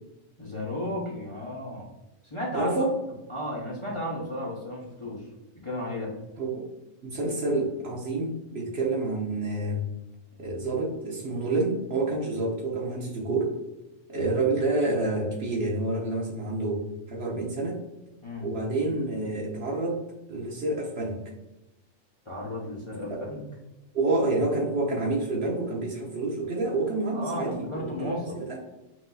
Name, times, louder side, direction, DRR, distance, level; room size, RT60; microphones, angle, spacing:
voice 1, 0.4-1.9 2.2-2.8 3.3-5.3 5.5-6.1 18.2-18.5 22.3-23.4 27.1-28.4, left 1 dB, 30° left, -4 dB, 0.7 m, -34 dB
voice 2, 2.5-2.9 6.4-6.6 7.0-9.8 10.4-13.5 14.1-16.8 17.1-17.8 18.4-20.0 20.3-21.2 23.1-23.2 23.9-28.6, right 2 dB, 55° right, -1 dB, 1.0 m, -28 dB
5.9 x 2.7 x 2.3 m, 0.99 s
omnidirectional pair, 1.4 m